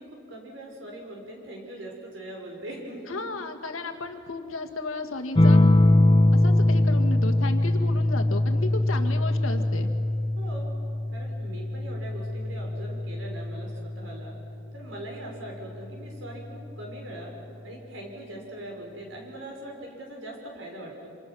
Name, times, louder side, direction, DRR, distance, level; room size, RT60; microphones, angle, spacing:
voice 1, 0.0-3.2 10.4-10.7 11.1-14.4 14.7-17.3 17.6-21.1, right 1 dB, 70° right, 0 dB, 6.1 m, -41 dB
voice 2, 3.1-5.7 6.3-9.9, left 2 dB, 90° left, 4 dB, 1.9 m, -34 dB
sound 1, 5.4-14.4 15.9-16.4, left 1 dB, 25° left, 0.8 m, -22 dB
27.5 x 26.5 x 6.3 m, 2.7 s
head